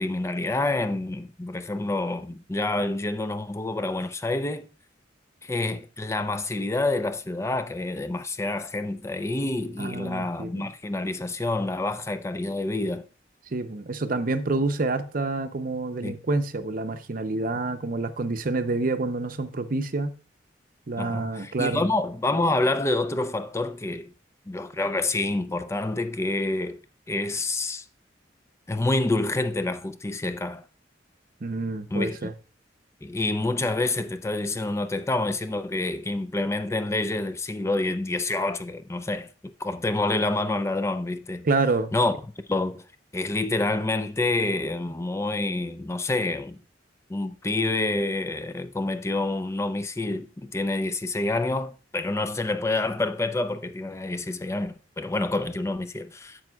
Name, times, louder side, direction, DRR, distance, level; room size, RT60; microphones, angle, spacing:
voice 1, 0.0-4.7 5.4-13.0 16.0-16.2 21.0-24.1 24.5-26.8 27.1-27.8 28.7-30.6 31.9-32.3 33.0-41.5 41.9-42.1 42.5-42.8 43.1-46.6 47.1-56.4, left 2 dB, 15° left, 0.4 m, -27 dB
voice 2, 9.8-10.7 13.5-20.1 20.9-21.9 31.4-32.3 41.4-41.9, right 3 dB, 50° right, 0.6 m, -28 dB
10.5 x 7.7 x 2.3 m
head